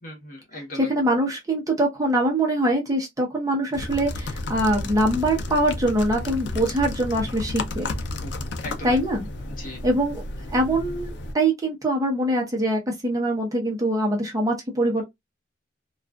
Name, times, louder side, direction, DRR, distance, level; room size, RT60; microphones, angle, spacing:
voice 1, 0.0-0.9 8.2-8.3 8.6-9.0 9.5-9.8, left 1 dB, 50° left, 1.1 m, -37 dB
voice 2, 0.8-7.9 8.8-9.3 9.8-10.2 10.5-15.0, right 1 dB, 20° right, 0.7 m, -23 dB
sound 1, 3.7-11.3, left 2 dB, 75° left, 0.4 m, -32 dB
2.4 x 2.3 x 2.2 m
head